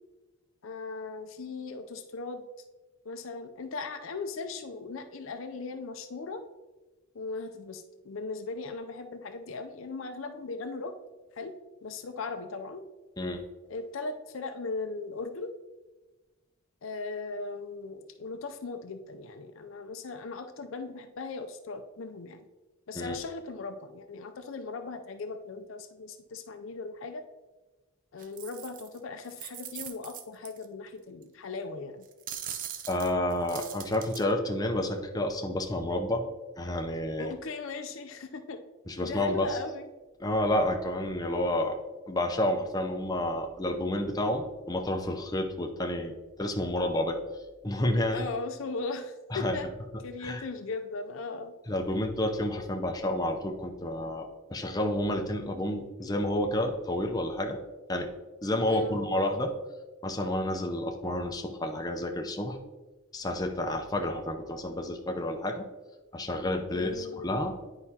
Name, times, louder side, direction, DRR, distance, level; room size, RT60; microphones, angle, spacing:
voice 1, 0.6-2.5 3.0-6.4 7.1-10.9 11.4-11.5 11.8-12.8 13.7-15.5 16.8-22.4 22.9-27.2 28.1-32.1 37.2-38.6 39.0-39.9 48.1-49.7 50.0-51.5 58.7-59.0 66.7-67.3, left 3 dB, 65° left, 7 dB, 0.5 m, -38 dB
sound 1, 28.2-29.0 29.2-30.7 31.2-31.3 32.0-34.2, right 10 dB, 40° right, 0.4 m, -41 dB
voice 2, 32.9-36.2 36.6-37.3 38.9-39.6 40.2-41.8 42.1-47.2 47.6-48.3 49.3-49.7 50.2-50.4 51.7-57.6 57.9-58.1 58.4-59.5 60.0-62.6 63.1-65.6 66.1-67.6, left 1 dB, 20° left, 3 dB, 0.6 m, -30 dB
10.0 x 4.8 x 2.8 m, 1.2 s
head